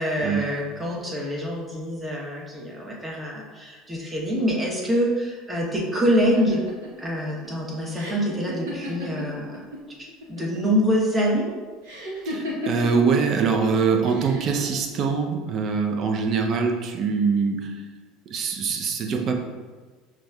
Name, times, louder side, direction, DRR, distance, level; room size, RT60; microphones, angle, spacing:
voice 1, 0.0-6.6 7.0-9.6 10.0-11.5, equal, 15° right, -3 dB, 0.9 m, -25 dB
sound 1, 6.2-9.8 10.1-10.7 11.8-13.1 14.0-14.6, left 1 dB, 70° right, 0.9 m, -34 dB
voice 2, 12.3-17.7 18.3-19.4, right 5 dB, 45° right, 3 dB, 0.5 m, -23 dB
6.0 x 2.3 x 2.3 m, 1.4 s
figure-of-eight pair, 70°, 0 cm